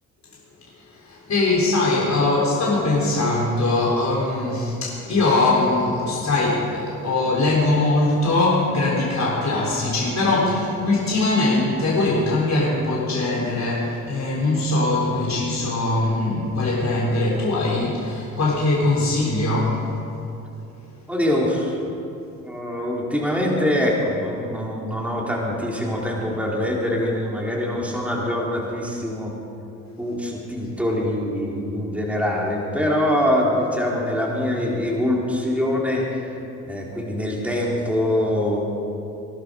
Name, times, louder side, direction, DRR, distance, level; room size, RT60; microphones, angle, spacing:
voice 1, 0.8-19.8, left 2 dB, 40° left, -5 dB, 3.8 m, -21 dB
voice 2, 21.1-21.8 22.4-29.3 30.0-38.6, left 1 dB, 5° right, -3 dB, 3.9 m, -24 dB
20.5 x 11.5 x 5.3 m, 2.7 s
hypercardioid pair, 55°, 43 cm